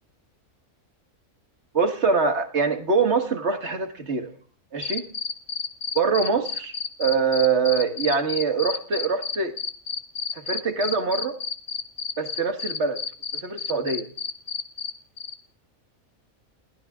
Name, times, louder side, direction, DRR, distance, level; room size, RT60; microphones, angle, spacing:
voice 1, 1.7-4.3 4.7-5.0 6.0-9.6 10.4-11.4 12.2-13.0 13.3-14.1, right 5 dB, 50° right, 8 dB, 1.9 m, -24 dB
sound 1, 4.8-14.9 15.2-15.3, left 5 dB, 40° left, 1.1 m, -30 dB
29.0 x 12.0 x 3.6 m, 0.42 s
omnidirectional pair, 1.5 m